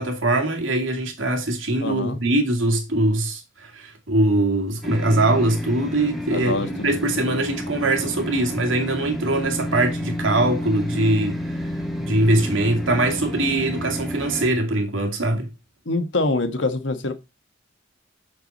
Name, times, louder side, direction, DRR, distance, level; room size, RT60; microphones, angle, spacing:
voice 1, 0.0-15.5, right 1 dB, 85° right, 2.2 m, -22 dB
voice 2, 1.8-2.2 6.3-6.7 15.8-17.1, left 2 dB, 65° left, 1.4 m, -24 dB
sound 1, 4.8-14.5, equal, ahead, 1.4 m, -30 dB
6.9 x 6.8 x 4.2 m
head